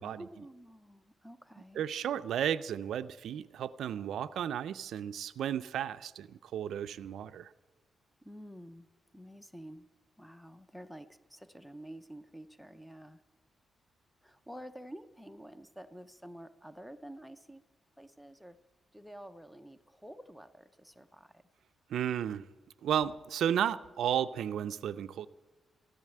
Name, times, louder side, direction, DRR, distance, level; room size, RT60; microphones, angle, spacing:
voice 1, 0.0-1.8 8.2-8.9 9.1-9.9 10.2-13.2 14.2-17.6 18.0-18.6 18.9-21.4, equal, ahead, 12 dB, 0.5 m, -49 dB
voice 2, 1.7-7.5 21.9-22.5 22.8-25.3, right 9 dB, 75° right, 13 dB, 0.4 m, -33 dB
14.5 x 11.0 x 8.5 m, 1.2 s
wide cardioid pair, 175°, 0 cm